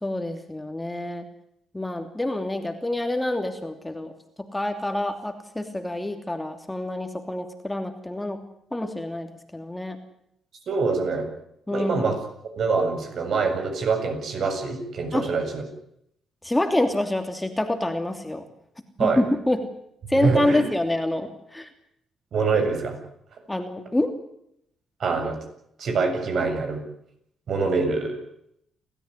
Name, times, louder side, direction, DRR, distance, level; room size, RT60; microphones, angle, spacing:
voice 1, 0.0-1.2 1.7-8.4 8.7-10.0 11.7-12.1 15.1-15.3 16.4-18.4 19.0-19.7 20.1-21.7 23.5-24.1, left 1 dB, 10° left, 6 dB, 2.9 m, -27 dB
voice 2, 10.7-11.3 11.7-12.2 12.6-15.6 19.0-19.2 20.1-20.6 22.3-23.0 25.0-25.4 25.8-26.8 27.5-28.2, right 4 dB, 60° right, 5 dB, 7.4 m, -24 dB
29.0 x 14.0 x 10.0 m, 0.76 s
cardioid pair, 90°, 0 cm